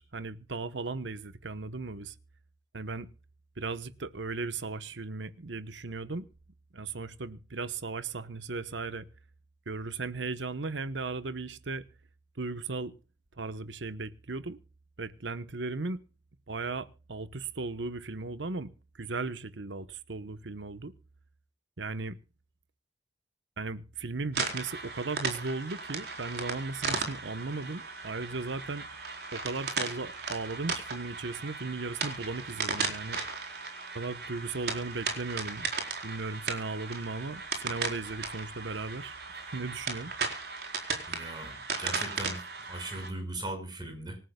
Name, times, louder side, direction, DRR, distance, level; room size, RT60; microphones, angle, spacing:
voice 1, 0.0-2.1 2.7-3.1 3.6-6.3 6.7-9.1 9.7-11.9 12.4-12.9 13.4-14.6 15.0-16.0 16.5-18.7 19.0-20.9 21.8-22.2 23.6-28.9 29.3-33.2 33.9-35.7 36.0-39.2 39.5-40.1, right 3 dB, 80° right, 1.1 m, -36 dB
sound 1, 24.3-43.1, right 4 dB, 55° right, 4.5 m, -36 dB
voice 2, 41.1-42.4 42.7-44.2, right 1 dB, 25° right, 5.6 m, -38 dB
26.0 x 14.0 x 2.3 m
head